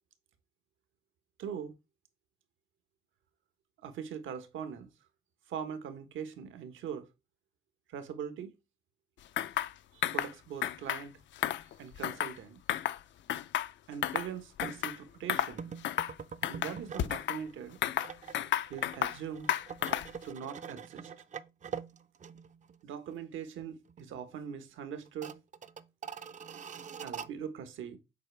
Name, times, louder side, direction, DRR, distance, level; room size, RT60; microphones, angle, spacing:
voice 1, 1.4-1.7 3.8-4.9 5.5-7.1 7.9-8.5 9.9-11.1 11.8-12.6 13.9-15.7 16.5-17.8 18.7-19.5 20.2-21.1 22.8-25.4 27.0-28.0, right 8 dB, 80° right, 1.3 m, -41 dB
sound 1, 9.4-9.7 10.0-10.3 10.6-11.0 11.4-12.4 12.7-13.0 13.3-14.3 14.6-15.0 15.3-15.5 15.8-16.1 16.4-17.4 17.8-19.2 19.5-20.2, left 12 dB, 65° left, 0.5 m, -32 dB
sound 2, 14.6-14.8 15.6-17.2 17.5-22.8 23.1-23.2 23.6-24.1 24.4-24.5 25.0-27.3, right 6 dB, 40° right, 0.6 m, -44 dB
7.5 x 4.6 x 3.3 m
cardioid pair, 90°, 20 cm